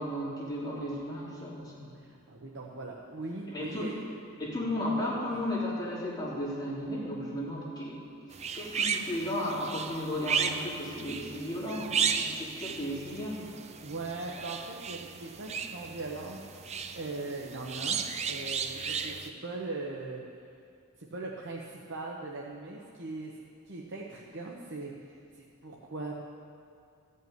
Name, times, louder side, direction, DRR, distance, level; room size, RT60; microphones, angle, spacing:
voice 1, 0.0-2.0 3.5-3.9 4.4-13.4, left 1 dB, 20° left, -8 dB, 3.2 m, -34 dB
voice 2, 2.0-4.0 13.8-16.4 16.9-18.0 18.3-20.2 21.0-23.3 23.7-26.2, right 3 dB, 55° right, -3 dB, 1.0 m, -40 dB
sound 1, 8.3-19.3, right 6 dB, 30° right, 0.5 m, -35 dB
14.0 x 5.6 x 9.3 m, 2.5 s
head